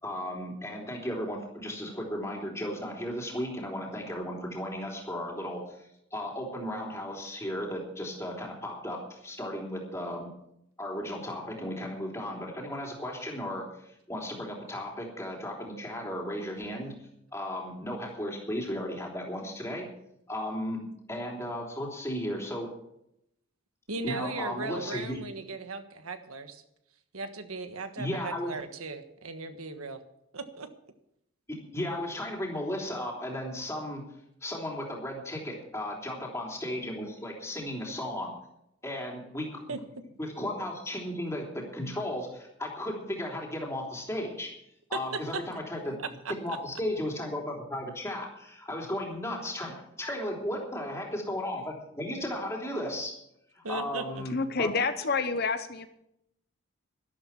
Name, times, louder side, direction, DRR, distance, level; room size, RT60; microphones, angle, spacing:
voice 1, 0.0-10.3 10.8-16.9 17.3-19.9 20.3-20.8 21.1-22.7 24.0-25.2 28.0-28.6 31.5-34.0 34.4-38.4 38.8-39.6 40.2-44.5 44.9-45.9 46.4-53.1 53.5-54.7, left 1 dB, 15° left, -1 dB, 3.3 m, -35 dB
voice 2, 23.9-26.6 27.1-30.0 30.3-30.7 39.7-39.8 44.9-45.0 45.3-45.4 46.0-46.3 53.6-54.2, right 3 dB, 85° right, 8 dB, 1.5 m, -37 dB
voice 3, 54.3-55.9, left 4 dB, 45° left, 10 dB, 0.8 m, -28 dB
12.5 x 12.0 x 6.0 m, 0.77 s
head